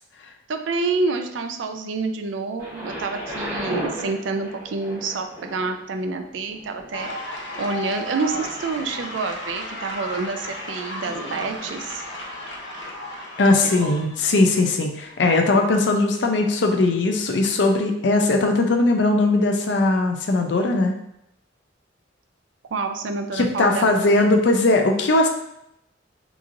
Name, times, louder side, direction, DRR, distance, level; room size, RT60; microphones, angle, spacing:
voice 1, 0.5-12.0 13.5-13.9 22.7-24.0, right 4 dB, 85° right, 6 dB, 0.4 m, -28 dB
Thunder, 2.6-14.4 15.2-15.3, equal, 15° right, 0.9 m, -38 dB
sound 1, 6.9-14.1, left 1 dB, 90° left, 0.9 m, -34 dB
voice 2, 13.4-20.9 23.3-25.3, left 2 dB, 70° left, 3 dB, 0.5 m, -19 dB
3.7 x 3.0 x 2.5 m, 0.80 s
head